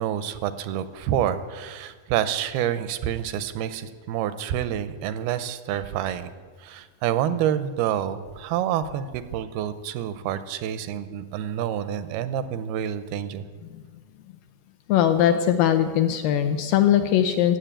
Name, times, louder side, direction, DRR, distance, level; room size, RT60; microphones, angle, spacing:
voice 1, 0.0-6.3 6.6-13.5, right 10 dB, 80° right, 12 dB, 2.6 m, -28 dB
voice 2, 14.9-17.6, left 10 dB, 80° left, 8 dB, 2.1 m, -20 dB
16.0 x 7.9 x 8.8 m, 1.5 s
omnidirectional pair, 4.5 m